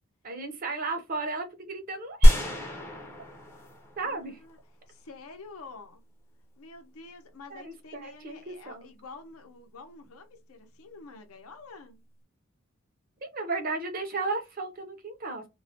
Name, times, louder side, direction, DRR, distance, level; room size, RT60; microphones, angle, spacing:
voice 1, 0.2-2.4 4.0-4.4 7.5-8.9 13.2-15.5, right 3 dB, 40° right, 0.5 m, -34 dB
sound 1, 2.2-4.5, equal, 10° left, 0.5 m, -23 dB
voice 2, 4.0-4.6 4.9-6.0 6.6-12.0, left 4 dB, 85° left, 0.6 m, -48 dB
2.2 x 2.1 x 2.7 m
head